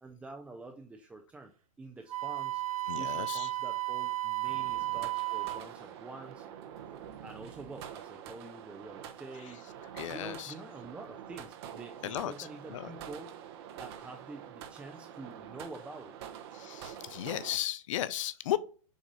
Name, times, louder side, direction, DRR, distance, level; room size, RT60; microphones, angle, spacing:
voice 1, 0.0-1.5 1.8-2.6 2.9-6.5 7.2-9.6 10.1-13.3 13.7-16.1, right 3 dB, 5° right, 0.4 m, -47 dB
Wind instrument woodwind instrument, 2.1-5.7, right 18 dB, 85° right, 0.7 m, -33 dB
voice 2, 2.9-3.5 9.4-9.5 9.9-10.5 12.0-12.9 16.5-18.6, left 12 dB, 65° left, 0.5 m, -35 dB
sound 1, 4.4-17.6, right 9 dB, 45° right, 0.8 m, -46 dB
7.2 x 2.5 x 5.3 m
hypercardioid pair, 135°, 18 cm